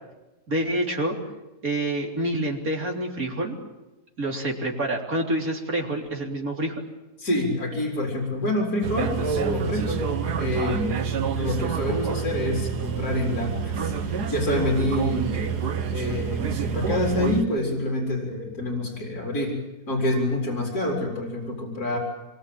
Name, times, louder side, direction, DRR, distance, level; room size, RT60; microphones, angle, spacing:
voice 1, 0.5-1.2 1.6-3.6 4.2-6.8, right 1 dB, 55° right, 1 dB, 4.0 m, -27 dB
voice 2, 7.2-11.0 11.3-15.4 15.9-19.6 19.9-22.0, left 1 dB, 65° left, 0 dB, 4.7 m, -27 dB
sound 1, 8.8-17.4, right 6 dB, 75° right, 1.8 m, -28 dB
25.5 x 22.5 x 8.7 m, 1.1 s
omnidirectional pair, 1.8 m